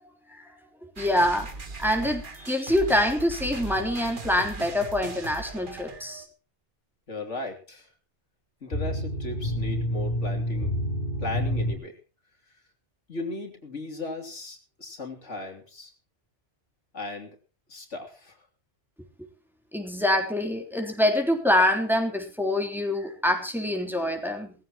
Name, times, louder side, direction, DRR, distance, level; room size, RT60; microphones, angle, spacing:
voice 1, 1.0-1.5 1.8-6.2 19.7-24.5, left 1 dB, ahead, 2 dB, 3.6 m, -25 dB
sound 1, 1.0-6.3, right 3 dB, 45° right, 1.6 m, -39 dB
voice 2, 7.1-7.9 8.6-10.7 11.2-12.0 13.1-15.9 16.9-17.4 17.7-18.4, left 2 dB, 90° left, 2 dB, 3.5 m, -37 dB
sound 2, 8.7-11.8, equal, 40° left, 4.2 m, -28 dB
20.5 x 15.0 x 3.0 m, 0.37 s
omnidirectional pair, 1.2 m